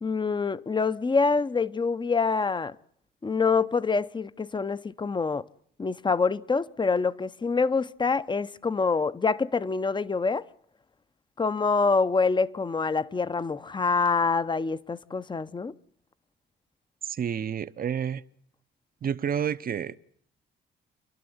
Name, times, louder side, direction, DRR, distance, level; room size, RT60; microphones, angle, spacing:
voice 1, 0.0-2.8 3.2-5.4 5.8-10.5 11.4-15.7, left 4 dB, 25° left, 0.8 m, -26 dB
voice 2, 17.0-18.2 19.0-20.0, right 8 dB, 45° right, 0.8 m, -29 dB
30.0 x 12.0 x 7.9 m
cardioid pair, 90°, 20 cm